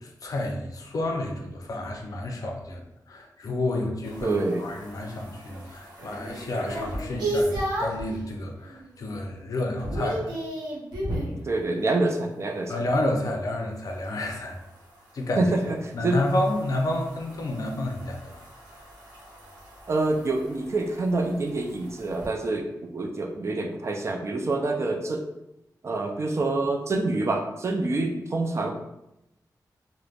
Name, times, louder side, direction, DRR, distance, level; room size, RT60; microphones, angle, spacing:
voice 1, 0.0-10.3 12.7-14.6 15.1-15.5 15.9-18.4, left 1 dB, 55° left, 2 dB, 0.5 m, -30 dB
sound 1, 4.0-8.1 8.6-9.0 9.3-11.4 13.9-22.3, right 1 dB, 90° right, 0.8 m, -35 dB
voice 2, 4.2-4.6 11.4-12.7 15.4-15.8 16.0-16.2 19.9-25.2 25.8-28.7, right 2 dB, 40° right, 3 dB, 0.4 m, -26 dB
3.2 x 2.0 x 2.4 m, 0.87 s
wide cardioid pair, 105°, 7 cm